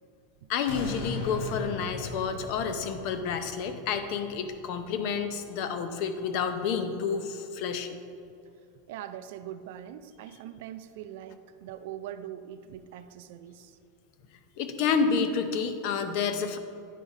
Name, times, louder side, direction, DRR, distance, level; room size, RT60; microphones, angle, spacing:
voice 1, 0.5-8.0 14.6-16.6, left 6 dB, 45° left, 8 dB, 0.6 m, -29 dB
sound 1, 0.7-5.8 6.2-6.3, left 2 dB, 70° left, 1.1 m, -39 dB
voice 2, 8.9-13.8, right 10 dB, 55° right, 11 dB, 0.4 m, -42 dB
10.0 x 4.9 x 4.0 m, 2.4 s
supercardioid pair, 170°, 0 cm